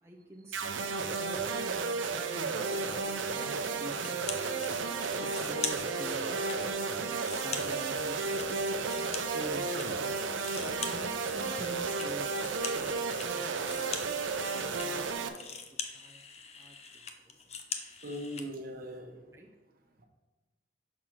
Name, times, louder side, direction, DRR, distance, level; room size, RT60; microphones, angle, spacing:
voice 1, 0.0-4.3 5.2-6.4 7.0-8.6 9.0-10.2 10.6-12.9 13.3-14.2 14.5-15.5 15.9-16.2 16.6-17.3 19.3-19.5, right 1 dB, 15° right, -1 dB, 0.5 m, -47 dB
sound 1, 0.5-15.3, right 4 dB, 85° right, 0.6 m, -33 dB
sound 2, 4.0-4.7 5.0-6.6 7.0-9.9 10.1-18.5, left 6 dB, 35° left, 0.6 m, -42 dB
voice 2, 18.0-19.2, equal, 50° right, 2 dB, 1.1 m, -40 dB
6.2 x 5.7 x 4.5 m, 1.2 s
head